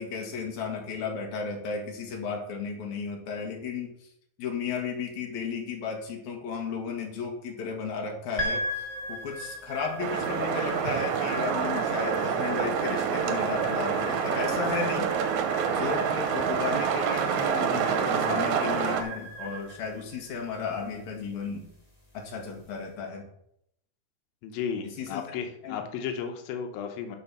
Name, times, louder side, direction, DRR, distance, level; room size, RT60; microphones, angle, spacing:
voice 1, 0.0-4.1 4.4-8.6 9.1-15.1 15.7-21.6 22.1-23.2 24.8-25.2 25.6-25.8, left 5 dB, 60° left, 1 dB, 2.9 m, -34 dB
sound 1, 8.4-22.7, equal, 15° left, 1.4 m, -39 dB
sound 2, 10.0-19.0, right 7 dB, 70° right, 2.0 m, -27 dB
voice 2, 24.4-27.2, left 7 dB, 90° left, 4 dB, 2.7 m, -34 dB
12.0 x 4.5 x 5.9 m, 0.74 s
omnidirectional pair, 4.1 m